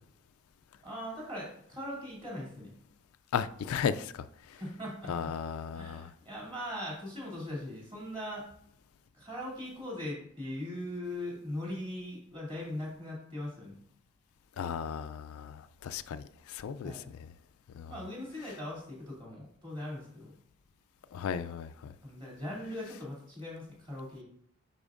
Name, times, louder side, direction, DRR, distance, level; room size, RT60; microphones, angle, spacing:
voice 1, 0.8-2.7 4.5-5.3 5.7-8.4 9.1-13.8 16.8-17.1 17.9-20.3 22.0-24.2, left 1 dB, 20° right, 2.5 m, -40 dB
voice 2, 3.3-4.6 5.1-6.1 14.6-17.0 17.7-17.9 21.1-21.9, left 7 dB, 75° left, 0.3 m, -35 dB
10.0 x 4.2 x 2.5 m
head